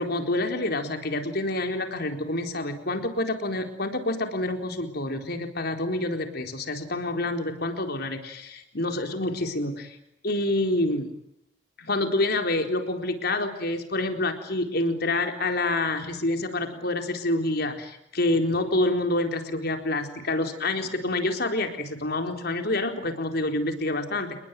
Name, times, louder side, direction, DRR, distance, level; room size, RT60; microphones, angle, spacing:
voice 1, 0.0-10.0 10.2-11.1 11.8-24.4, left 2 dB, 55° left, 5 dB, 4.2 m, -27 dB
30.0 x 20.5 x 9.4 m, 0.77 s
head